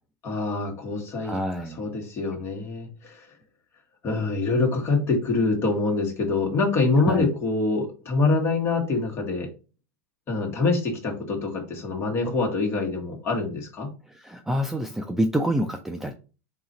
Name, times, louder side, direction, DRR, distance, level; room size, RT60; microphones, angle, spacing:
voice 1, 0.2-1.4 1.8-3.3 4.0-9.5 10.3-13.9, left 3 dB, 30° left, 2 dB, 1.3 m, -25 dB
voice 2, 1.2-1.9 7.1-7.3 14.1-16.1, equal, 5° right, 4 dB, 0.4 m, -27 dB
3.8 x 2.4 x 4.1 m, 0.33 s
supercardioid pair, 125°, 9 cm